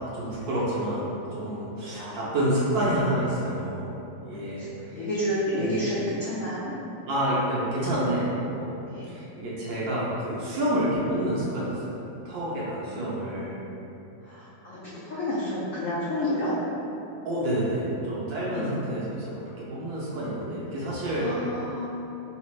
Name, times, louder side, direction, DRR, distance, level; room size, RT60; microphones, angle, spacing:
voice 1, 0.0-5.1 5.5-5.8 7.1-8.8 9.1-12.0 12.2-13.6 17.2-21.5, right 1 dB, 70° right, -7 dB, 1.0 m, -28 dB
voice 2, 1.8-2.2 4.9-6.7 8.9-9.1 14.2-14.8 15.0-16.5 18.5-18.7 21.1-21.8, left 1 dB, 80° left, -8 dB, 0.7 m, -30 dB
3.4 x 2.4 x 3.0 m, 2.9 s
omnidirectional pair, 2.0 m